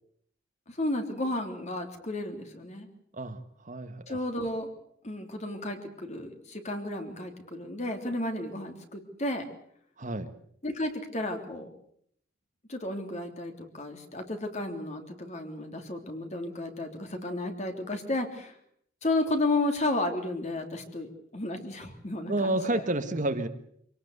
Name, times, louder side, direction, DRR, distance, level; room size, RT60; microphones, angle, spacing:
voice 1, 0.7-2.9 4.1-4.7 5.0-9.4 10.6-11.7 12.7-18.6 19.0-22.8, left 2 dB, 40° left, 5 dB, 3.2 m, -33 dB
voice 2, 3.6-4.2 10.0-10.3 22.3-23.5, right 2 dB, 40° right, 8 dB, 1.7 m, -30 dB
25.5 x 18.0 x 8.1 m, 0.67 s
head